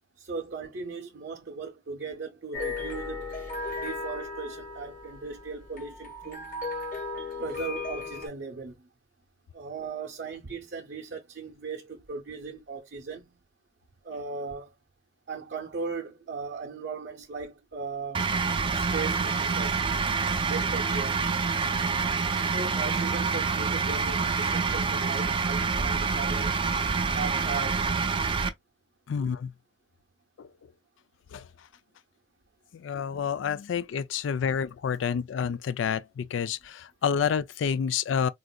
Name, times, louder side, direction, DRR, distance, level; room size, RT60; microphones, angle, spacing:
voice 1, 0.2-3.4 3.7-6.4 7.4-8.9 9.5-13.4 14.0-14.7 15.3-18.3 18.7-19.9 20.4-21.3 22.2-26.6 27.1-27.9, right 4 dB, 65° right, 0.7 m, -38 dB
sound 1, 2.5-8.3, left 3 dB, 45° left, 1.3 m, -36 dB
sound 2, 18.1-28.5, right 5 dB, 30° right, 0.4 m, -27 dB
voice 2, 29.1-29.5 30.4-30.5 31.3-31.4 32.7-38.3, left 7 dB, 90° left, 0.3 m, -29 dB
3.9 x 2.4 x 2.2 m
head